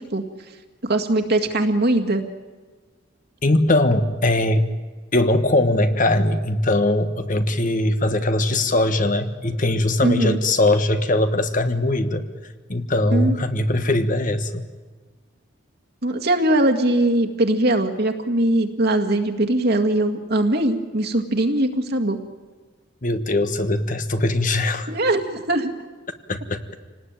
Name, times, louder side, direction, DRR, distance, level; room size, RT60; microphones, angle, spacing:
voice 1, 0.8-2.2 10.0-10.4 13.1-13.3 16.0-22.2 24.9-25.7, right 1 dB, 55° right, 4 dB, 2.0 m, -21 dB
voice 2, 3.4-4.8 5.1-12.2 12.7-14.6 23.0-24.9 26.3-26.6, left 1 dB, 40° left, 9 dB, 1.5 m, -20 dB
27.0 x 19.0 x 9.1 m, 1.4 s
head